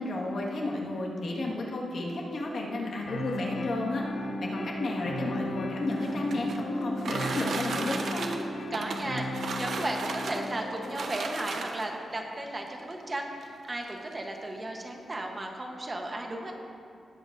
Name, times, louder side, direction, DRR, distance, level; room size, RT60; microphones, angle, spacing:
voice 1, 0.0-4.0 4.4-8.3, left 2 dB, 60° left, -3 dB, 1.6 m, -32 dB
sound 1, 3.1-11.1, left 1 dB, 85° left, 1.1 m, -35 dB
sound 2, 5.8-12.0 12.9-13.0 13.4-13.5 13.8-14.2, right 4 dB, 65° right, 0.7 m, -35 dB
voice 2, 8.7-16.5, right 1 dB, 25° right, 2 dB, 0.9 m, -35 dB
18.5 x 7.9 x 2.6 m, 2.5 s
wide cardioid pair, 135°, 0 cm